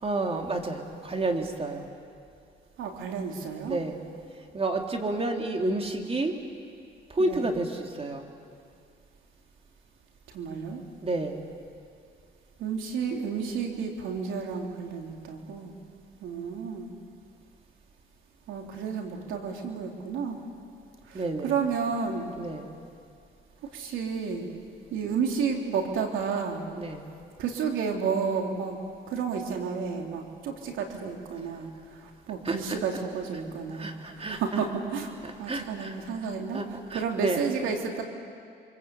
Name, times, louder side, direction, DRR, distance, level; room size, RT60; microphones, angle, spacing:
voice 1, 0.0-1.9 3.6-4.1 4.5-6.4 7.1-8.3 11.0-11.5 21.1-21.6 22.4-22.7 26.8-27.1 32.4-32.8 33.7-34.6 35.2-35.9 36.5-37.4, right 2 dB, 30° right, 3 dB, 3.2 m, -30 dB
voice 2, 2.8-3.8 7.2-7.5 10.3-10.8 12.6-15.7 16.2-16.9 18.5-20.4 21.1-22.4 23.7-24.5 24.9-26.7 27.4-28.8 29.1-36.6 36.9-38.0, right 6 dB, 90° right, 2 dB, 3.3 m, -31 dB
29.0 x 24.5 x 8.4 m, 2.3 s
cardioid pair, 90°, 20 cm